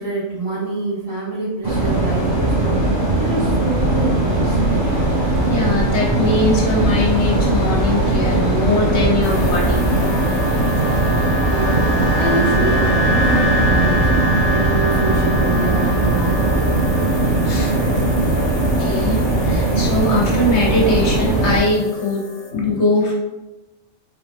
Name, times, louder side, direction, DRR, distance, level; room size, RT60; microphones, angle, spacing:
voice 1, 0.0-4.6 11.5-11.8 12.1-16.5, right 3 dB, 80° right, -6 dB, 2.1 m, -26 dB
sound 1, 1.6-21.6, right 2 dB, 25° right, 1.6 m, -18 dB
voice 2, 5.5-9.8 17.4-18.0 18.8-22.2 22.5-23.2, left 2 dB, 60° left, -3 dB, 1.3 m, -21 dB
sound 2, 9.2-22.5, left 1 dB, 75° left, 1.1 m, -27 dB
5.7 x 4.0 x 2.2 m, 1.0 s
omnidirectional pair, 1.4 m